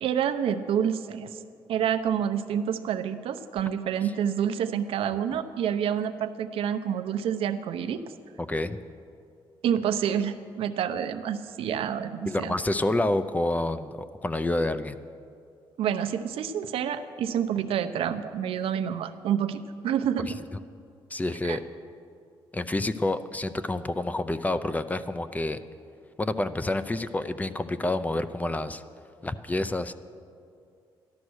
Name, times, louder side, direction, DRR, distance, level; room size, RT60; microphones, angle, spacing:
voice 1, 0.0-1.4 1.7-8.0 9.6-12.5 15.8-20.4 21.4-21.6, right 8 dB, 85° right, 9 dB, 0.7 m, -28 dB
voice 2, 8.4-8.8 12.2-15.0 21.1-21.6 22.5-25.6 26.2-28.8 29.2-29.9, left 2 dB, 15° left, 12 dB, 0.5 m, -28 dB
13.5 x 11.5 x 6.3 m, 2.4 s
cardioid pair, 115°, 10 cm